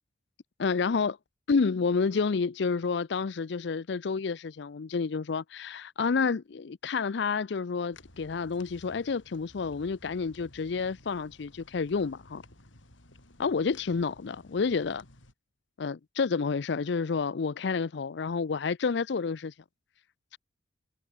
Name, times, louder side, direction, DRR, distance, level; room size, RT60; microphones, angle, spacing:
voice 1, 0.6-1.2 1.5-12.4 13.4-15.0 15.8-19.5, left 5 dB, 65° left, 0.5 m, -29 dB
sound 1, 7.9-15.3, left 1 dB, 80° left, 5.1 m, -55 dB
head